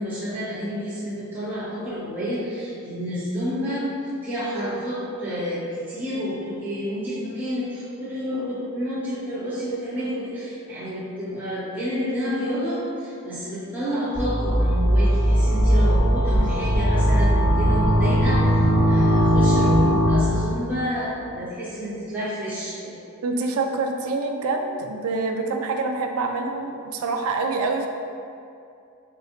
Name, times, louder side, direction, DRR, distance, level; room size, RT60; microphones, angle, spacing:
voice 1, 0.0-3.9 4.2-22.9, equal, 10° right, -14 dB, 1.1 m, -29 dB
sound 1, 14.1-20.5, equal, 50° right, 1.0 m, -19 dB
voice 2, 23.2-27.9, right 3 dB, 85° right, 3 dB, 0.4 m, -26 dB
3.8 x 2.5 x 3.8 m, 2.5 s
head